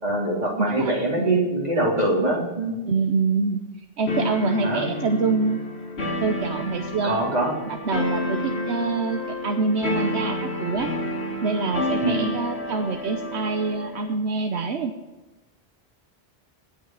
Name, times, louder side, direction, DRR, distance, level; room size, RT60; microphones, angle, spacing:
voice 1, 0.0-2.8 4.6-4.9 7.0-7.6 12.0-12.3, right 2 dB, 40° right, -3 dB, 3.5 m, -23 dB
voice 2, 0.6-1.4 2.9-3.6 4.0-5.6 6.2-7.2 7.7-10.9 11.4-14.9, right 4 dB, 75° right, 5 dB, 1.2 m, -25 dB
sound 1, 4.1-14.1, left 1 dB, 75° left, 1.8 m, -29 dB
17.0 x 5.8 x 7.2 m, 1.2 s
omnidirectional pair, 1.1 m